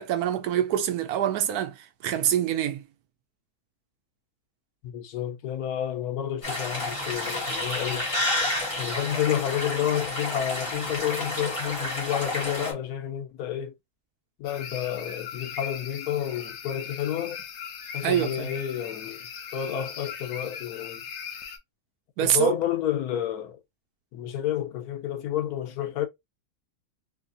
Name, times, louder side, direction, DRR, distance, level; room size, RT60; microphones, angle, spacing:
voice 1, 0.0-2.8 18.0-18.5 22.2-22.5, right 10 dB, 90° right, 1.1 m, -25 dB
voice 2, 4.8-8.1 8.8-13.7 14.4-17.4 17.9-21.0 22.2-23.6 24.1-26.1, left 10 dB, 85° left, 1.2 m, -30 dB
sound 1, 6.4-12.7, left 1 dB, 20° left, 1.3 m, -30 dB
sound 2, 14.4-21.6, left 7 dB, 60° left, 0.8 m, -39 dB
3.2 x 2.6 x 2.5 m
omnidirectional pair, 1.6 m